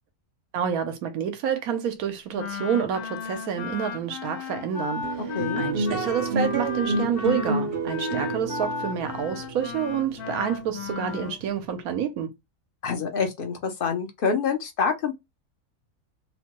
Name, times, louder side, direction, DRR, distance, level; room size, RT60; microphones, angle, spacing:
voice 1, 0.5-12.3, right 8 dB, 75° right, 1.2 m, -28 dB
Wind instrument woodwind instrument, 2.4-11.4, left 6 dB, 85° left, 1.2 m, -34 dB
sound 1, 5.0-11.7, right 3 dB, 60° right, 0.6 m, -30 dB
voice 2, 12.8-15.1, left 5 dB, 55° left, 0.6 m, -26 dB
2.9 x 2.1 x 2.9 m
omnidirectional pair, 1.6 m